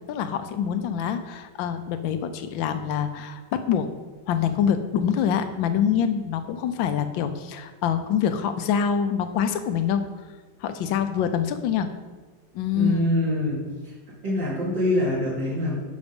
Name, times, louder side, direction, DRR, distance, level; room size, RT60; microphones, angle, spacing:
voice 1, 0.1-3.9 4.3-10.0 10.6-11.9 12.5-13.1, left 8 dB, 75° left, 9 dB, 1.5 m, -25 dB
voice 2, 12.7-13.6 14.2-15.8, left 1 dB, 60° right, -8 dB, 2.8 m, -24 dB
13.0 x 5.2 x 5.3 m, 1.3 s
omnidirectional pair, 2.2 m